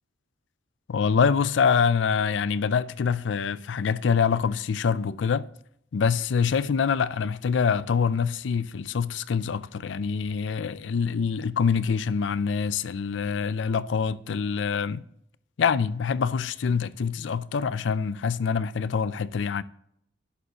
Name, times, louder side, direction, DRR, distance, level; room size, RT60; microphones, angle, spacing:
voice 1, 0.9-5.5 5.9-15.0 15.6-19.6, left 6 dB, 70° left, 0.4 m, -25 dB
11.0 x 6.7 x 2.9 m
head